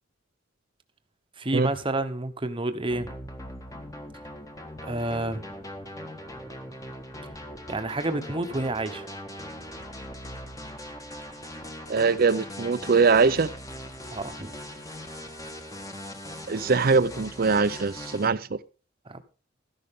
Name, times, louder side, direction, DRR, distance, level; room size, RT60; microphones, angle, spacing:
voice 1, 1.4-3.2 4.8-5.4 7.7-9.1 14.1-14.5 19.1-19.2, right 2 dB, 25° right, 1.0 m, -29 dB
sound 1, 2.9-18.3, left 1 dB, 15° left, 1.4 m, -40 dB
voice 2, 11.9-13.5 16.5-18.6, right 4 dB, 45° right, 0.6 m, -22 dB
13.0 x 11.0 x 3.7 m
head